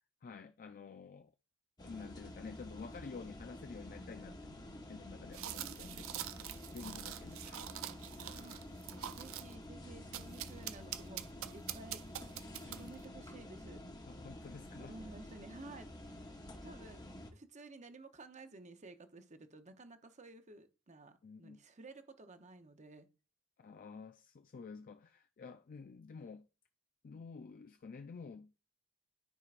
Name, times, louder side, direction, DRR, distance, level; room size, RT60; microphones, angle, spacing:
voice 1, 0.2-1.3 1.8-6.1 6.7-7.6 12.6-12.9 14.1-15.0 21.2-21.6 23.6-26.5 27.0-28.5, left 5 dB, 40° left, 0.4 m, -50 dB
sound 1, 1.8-17.3, left 1 dB, 20° left, 0.8 m, -50 dB
sound 2, 5.3-9.6 10.1-13.0, right 12 dB, 70° right, 0.4 m, -45 dB
voice 2, 5.5-6.5 8.2-8.6 8.9-11.3 11.5-12.0 12.6-13.8 14.6-16.2 16.6-17.0 17.3-23.1, right 2 dB, 35° right, 0.8 m, -54 dB
13.0 x 4.5 x 2.5 m
head